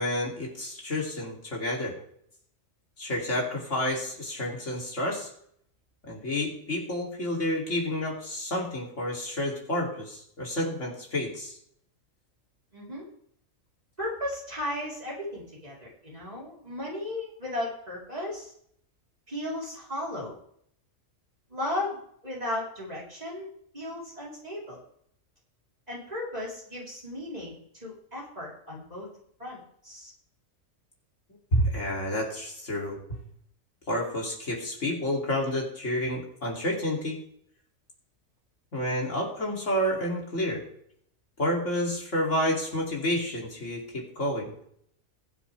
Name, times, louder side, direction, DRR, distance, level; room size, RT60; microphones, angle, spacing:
voice 1, 0.0-1.9 3.0-5.3 6.1-11.6 31.5-33.2 33.9-37.2 38.7-40.6 41.4-44.5, left 1 dB, 65° left, -2 dB, 3.3 m, -29 dB
voice 2, 12.7-13.0 14.0-18.5 19.3-20.4 21.5-22.0 22.2-23.5 23.7-24.8 25.9-29.1 29.4-30.1, left 1 dB, 30° right, -5 dB, 4.1 m, -35 dB
21.5 x 7.4 x 3.4 m, 0.67 s
omnidirectional pair, 1.3 m